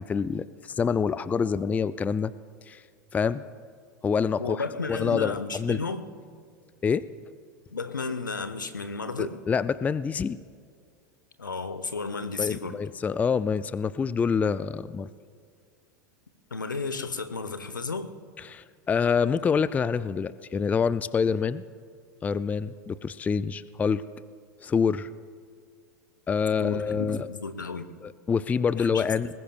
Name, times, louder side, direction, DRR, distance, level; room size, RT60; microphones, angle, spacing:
voice 1, 0.0-2.3 2.7-2.8 3.1-3.4 4.0-4.6 4.9-5.8 6.8-7.0 9.2-10.4 12.4-15.1 18.5-21.6 22.2-24.0 24.6-25.1 26.3-27.3 28.0-29.3, left 6 dB, 15° left, 16 dB, 0.3 m, -26 dB
voice 2, 4.4-6.0 7.7-9.4 11.4-12.8 16.5-18.1 26.6-27.9 28.8-29.1, left 4 dB, 85° left, 11 dB, 0.9 m, -33 dB
20.5 x 19.5 x 2.4 m, 2.1 s
figure-of-eight pair, 85°, 10 cm